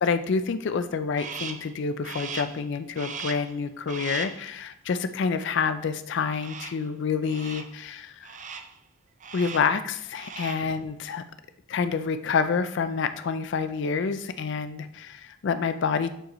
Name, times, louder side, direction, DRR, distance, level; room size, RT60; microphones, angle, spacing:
voice 1, 0.0-8.3 9.3-11.2 11.7-16.1, left 5 dB, 60° left, 11 dB, 0.4 m, -28 dB
Crow, 1.2-1.7 2.0-2.6 2.9-3.5 3.9-4.4 6.3-6.9 7.2-7.8 8.2-8.8 9.2-9.8 10.1-10.7, right 6 dB, 35° right, 0.5 m, -38 dB
8.7 x 5.1 x 3.1 m, 0.74 s
head